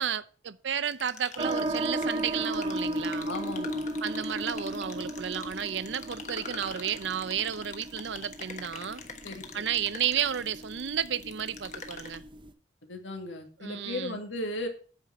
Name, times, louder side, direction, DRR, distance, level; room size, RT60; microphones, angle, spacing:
voice 1, 0.0-3.3 4.0-9.0 9.5-12.2 13.6-14.2, right 8 dB, 75° right, 0.6 m, -32 dB
sound 1, 0.9-12.2, left 5 dB, 40° left, 1.2 m, -45 dB
sound 2, 1.4-12.5, right 1 dB, 25° right, 0.7 m, -36 dB
voice 2, 3.2-3.9 9.2-9.6 12.8-14.7, left 1 dB, 85° left, 2.3 m, -36 dB
8.9 x 5.9 x 7.0 m
head